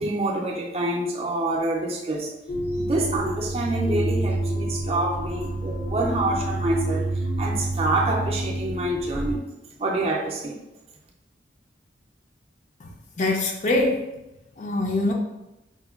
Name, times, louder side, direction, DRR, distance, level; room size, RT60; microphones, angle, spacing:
voice 1, 0.0-2.3 2.8-7.1 7.4-9.4 9.8-10.6, right 2 dB, 35° right, 0.5 m, -26 dB
sound 1, 2.5-9.4, right 1 dB, 85° left, 0.6 m, -28 dB
voice 2, 13.2-14.0 14.6-15.1, left 2 dB, 40° left, 0.4 m, -23 dB
5.0 x 2.2 x 2.3 m
head